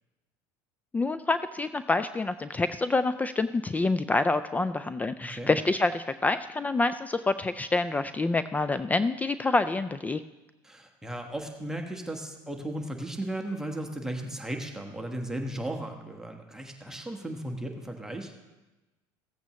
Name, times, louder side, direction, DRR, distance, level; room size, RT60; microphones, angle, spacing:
voice 1, 0.9-10.2, left 3 dB, 15° left, 12 dB, 0.3 m, -27 dB
voice 2, 10.6-18.3, right 1 dB, 5° right, 2 dB, 1.3 m, -36 dB
15.5 x 8.1 x 3.1 m, 1.1 s
supercardioid pair, 95°, 10 cm